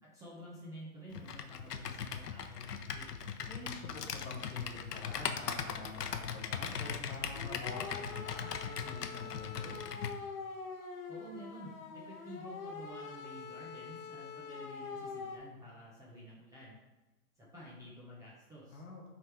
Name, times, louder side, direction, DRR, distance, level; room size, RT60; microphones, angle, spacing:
voice 1, 0.0-3.1 11.1-16.8 17.4-18.8, equal, 5° right, -7 dB, 0.7 m, -51 dB
Computer keyboard, 1.1-10.2, left 7 dB, 85° left, 0.8 m, -39 dB
voice 2, 3.5-9.8 18.7-19.1, left 2 dB, 15° left, -1 dB, 0.9 m, -47 dB
sound 1, 7.3-15.4, left 5 dB, 60° left, 1.4 m, -45 dB
6.5 x 3.9 x 4.4 m, 1.1 s
hypercardioid pair, 135°, 46 cm